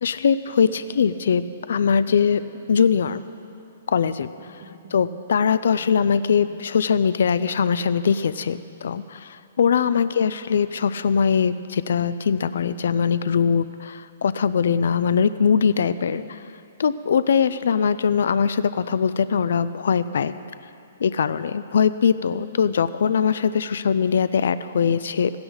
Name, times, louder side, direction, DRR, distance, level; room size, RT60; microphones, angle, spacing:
voice 1, 0.0-2.4 2.7-3.2 3.9-4.6 4.9-16.4 16.8-20.3 21.0-25.3, left 6 dB, 70° left, 14 dB, 0.5 m, -21 dB
sound 1, 0.7-8.6, right 2 dB, 45° right, 4.2 m, -50 dB
16.5 x 16.5 x 4.0 m, 2.6 s
hypercardioid pair, 160°, 0 cm